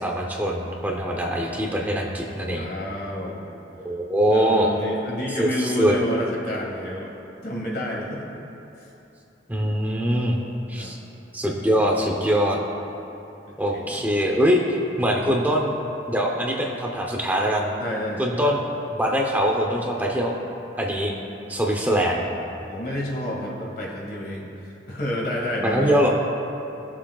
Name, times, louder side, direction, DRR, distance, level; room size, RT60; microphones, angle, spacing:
voice 1, 0.0-2.7 3.8-4.7 5.4-5.5 5.8-5.9 9.5-10.4 10.7-11.0 11.3-12.6 13.6-15.7 16.1-17.7 18.2-18.6 18.9-20.4 20.8-21.1 21.5-22.3 25.6-26.1, equal, 10° right, -1 dB, 0.8 m, -22 dB
voice 2, 2.4-3.4 4.3-7.1 7.4-8.3 8.8-8.9 10.8-10.9 13.5-14.1 15.1-15.3 17.8-18.5 22.7-26.0, left 1 dB, 60° left, -3 dB, 2.1 m, -30 dB
20.5 x 7.3 x 2.4 m, 3.0 s
head